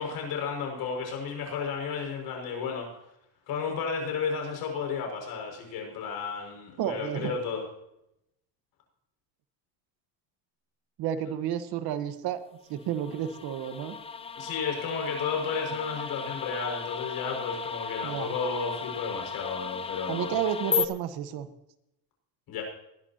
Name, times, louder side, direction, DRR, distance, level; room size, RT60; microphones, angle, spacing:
voice 1, 0.0-2.9 3.5-7.6 14.4-20.3 22.5-22.6, left 5 dB, 60° left, 2 dB, 5.9 m, -33 dB
voice 2, 6.8-7.3 11.0-12.4 12.7-14.0 18.0-18.3 20.1-21.5, right 10 dB, 60° right, 10 dB, 1.5 m, -31 dB
sound 1, 12.8-20.9, left 5 dB, 15° left, 0.5 m, -35 dB
21.0 x 11.5 x 2.9 m, 0.82 s
cardioid pair, 150°, 42 cm